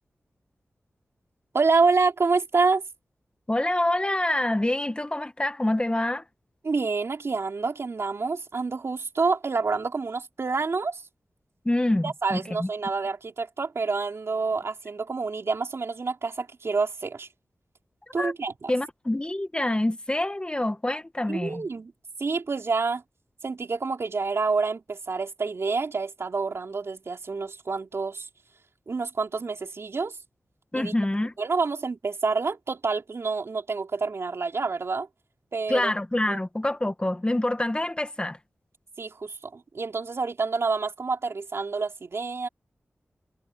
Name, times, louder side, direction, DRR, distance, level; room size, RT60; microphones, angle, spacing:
voice 1, 1.5-2.8 6.6-11.0 12.0-17.3 18.1-18.7 21.3-21.9 22.2-23.0 23.4-28.3 28.9-30.2 30.7-30.9 31.4-35.1 35.5-35.9 36.3-36.4 39.0-42.5, right 4 dB, 65° right, 3.3 m, -27 dB
voice 2, 3.5-6.2 11.6-12.7 18.2-18.3 18.7-21.6 30.7-31.3 35.7-38.4, left 1 dB, 20° left, 1.7 m, -26 dB
cardioid pair, 60°, 5 cm